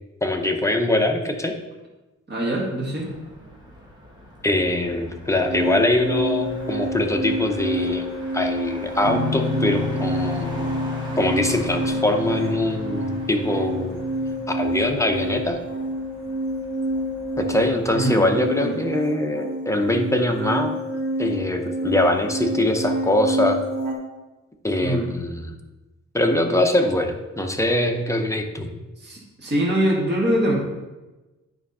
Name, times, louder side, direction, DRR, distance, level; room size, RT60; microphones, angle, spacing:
voice 1, 0.2-1.6 4.4-8.1 8.3-10.8 11.2-14.0 14.5-15.6 17.4-20.8 21.2-23.6 24.6-25.5 26.1-28.7, left 1 dB, 10° left, 3 dB, 0.6 m, -23 dB
voice 2, 2.3-3.1 17.9-18.2 18.6-18.7 24.8-25.1 29.0-30.5, right 1 dB, 35° right, -4 dB, 1.6 m, -23 dB
Motor vehicle (road), 3.0-18.0, equal, 15° right, 1.4 m, -43 dB
sound 1, 5.4-24.0, right 1 dB, 75° right, 1.3 m, -28 dB
Guitar, 9.0-14.3, left 4 dB, 25° left, 2.7 m, -31 dB
9.0 x 3.5 x 5.4 m, 1.1 s
wide cardioid pair, 145°, 30 cm